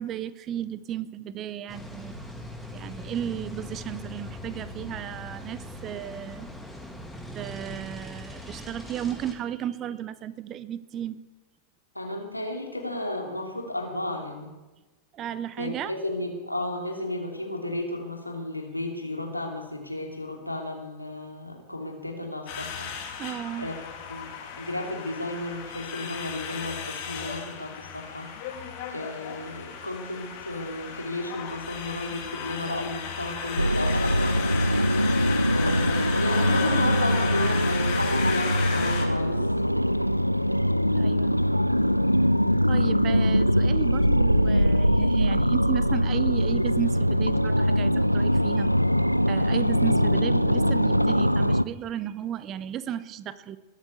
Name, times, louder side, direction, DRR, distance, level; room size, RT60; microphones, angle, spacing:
voice 1, 0.0-2.2 2.7-6.5 7.3-11.2 15.1-15.9 23.2-23.7 40.9-41.4 42.7-48.7 49.3-53.6, right 10 dB, 30° right, 15 dB, 0.9 m, -34 dB
sound 1, 1.7-9.3, left 1 dB, 5° left, 2.6 m, -41 dB
voice 2, 11.9-14.5 15.6-23.2 23.6-23.8 24.1-24.3 24.6-28.3 28.9-34.4 35.5-39.5 49.5-49.8, left 1 dB, 85° left, 1 dB, 2.9 m, -33 dB
sound 2, 22.5-39.1, left 7 dB, 45° left, 2.9 m, -35 dB
sound 3, 33.6-51.6, equal, 90° right, 0.4 m, -22 dB
21.0 x 8.4 x 7.0 m, 1.1 s
figure-of-eight pair, 90°, 0 cm